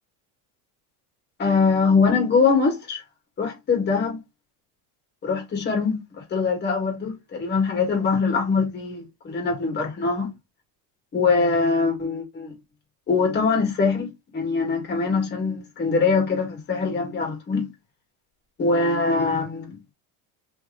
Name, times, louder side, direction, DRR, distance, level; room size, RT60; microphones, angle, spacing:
voice 1, 1.4-3.0 3.4-4.2 5.2-6.0 6.3-10.3 11.1-12.5 13.1-17.7 18.6-19.8, left 4 dB, 25° left, 1.5 m, -23 dB
2.9 x 2.9 x 3.5 m
cardioid pair, 155°, 45 cm